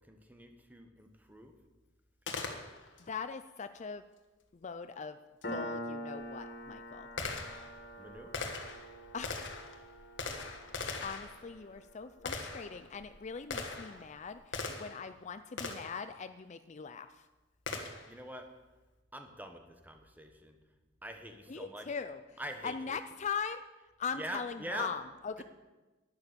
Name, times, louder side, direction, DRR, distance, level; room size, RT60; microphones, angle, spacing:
voice 1, 0.1-1.5 8.0-8.3 17.8-18.5 19.1-20.6 21.0-21.9 22.4-23.0 24.1-24.9 25.4-25.5, right 1 dB, 10° right, 5 dB, 1.3 m, -44 dB
Gunshot gunfire, 2.3-3.1 5.4-5.5 6.2-15.1 15.6-16.0 17.7-18.2, left 4 dB, 80° left, 1.6 m, -41 dB
voice 2, 3.1-4.0 4.6-5.2 5.5-7.1 9.1-9.6 11.0-17.1 21.5-22.2 22.6-23.6 24.0-25.4, left 6 dB, 40° left, 11 dB, 0.5 m, -40 dB
Piano, 5.4-12.6, equal, 55° left, 2.4 m, -45 dB
11.5 x 10.5 x 6.9 m, 1.1 s
head